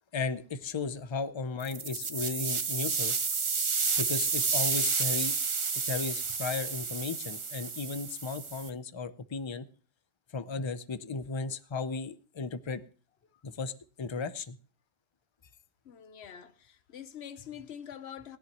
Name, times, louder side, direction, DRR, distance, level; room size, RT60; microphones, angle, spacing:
voice 1, 0.1-3.2 4.0-5.3 5.8-9.7 10.3-12.8 13.4-13.7 14.0-14.6, left 4 dB, 35° left, 0.5 m, -35 dB
sound 1, 1.6-8.7, right 5 dB, 35° right, 0.6 m, -31 dB
voice 2, 15.8-18.4, left 9 dB, 60° left, 1.1 m, -45 dB
17.0 x 10.5 x 3.0 m
omnidirectional pair, 1.3 m